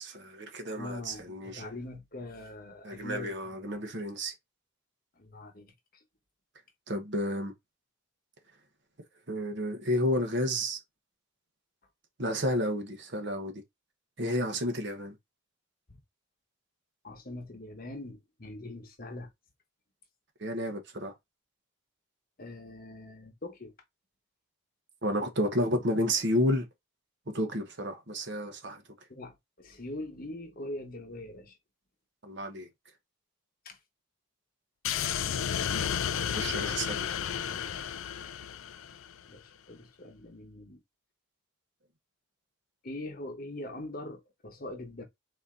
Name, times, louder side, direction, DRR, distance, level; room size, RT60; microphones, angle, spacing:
voice 1, 0.0-1.6 2.8-4.3 6.9-7.5 9.3-10.8 12.2-13.6 14.2-15.1 20.4-21.1 25.0-26.7 27.3-28.8 32.2-32.7 36.3-37.1, equal, 55° right, 1.1 m, -31 dB
voice 2, 0.8-3.4 5.2-6.0 15.9-16.0 17.0-19.3 22.4-23.7 29.1-31.6 33.6-33.8 39.2-40.8 42.8-45.0, left 1 dB, 40° left, 1.0 m, -42 dB
sound 1, 34.8-39.2, left 8 dB, 70° left, 0.4 m, -32 dB
4.2 x 2.8 x 3.7 m
head